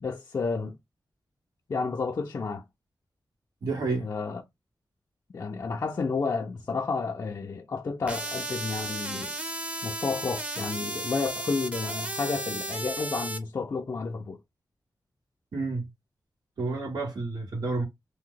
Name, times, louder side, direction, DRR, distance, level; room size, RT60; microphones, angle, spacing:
voice 1, 0.0-0.8 1.7-2.6 4.0-4.4 5.3-9.3 9.8-14.4, left 4 dB, 50° left, 0.4 m, -31 dB
voice 2, 3.6-4.1 15.5-15.9 16.6-17.8, right 3 dB, 75° right, 1.5 m, -30 dB
sound 1, 8.1-13.4, right 1 dB, 20° right, 0.6 m, -34 dB
2.7 x 2.1 x 3.7 m
wide cardioid pair, 110°, 7 cm